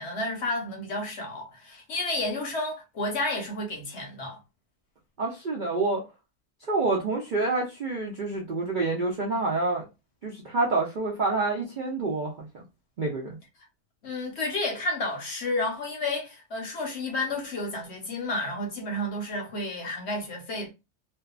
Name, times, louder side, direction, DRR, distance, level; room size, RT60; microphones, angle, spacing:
voice 1, 0.0-4.4 14.0-20.7, left 2 dB, 55° left, 0.9 m, -31 dB
voice 2, 5.2-6.0 6.7-9.9 10.2-12.6 13.0-13.4, right 3 dB, 90° right, 0.4 m, -27 dB
2.7 x 2.3 x 2.3 m
omnidirectional pair, 1.7 m